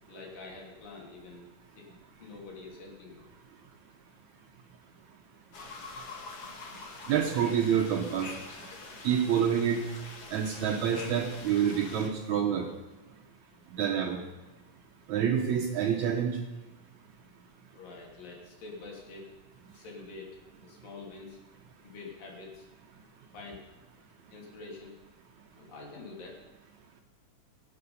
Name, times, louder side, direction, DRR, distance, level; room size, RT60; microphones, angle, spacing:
voice 1, 0.1-1.4 1.7-1.9 2.2-3.2 17.7-19.3 19.7-21.4 21.8-22.7 23.3-23.6 24.3-24.9 25.6-26.4, left 3 dB, 70° left, -1 dB, 4.4 m, -46 dB
sound 1, 5.5-12.1, left 3 dB, 45° left, 2.3 m, -45 dB
voice 2, 7.1-8.3 9.0-9.8 10.3-12.7 13.7-14.2 15.1-16.4, right 8 dB, 70° right, 3 dB, 1.9 m, -27 dB
22.5 x 7.8 x 5.5 m, 1.1 s
omnidirectional pair, 4.1 m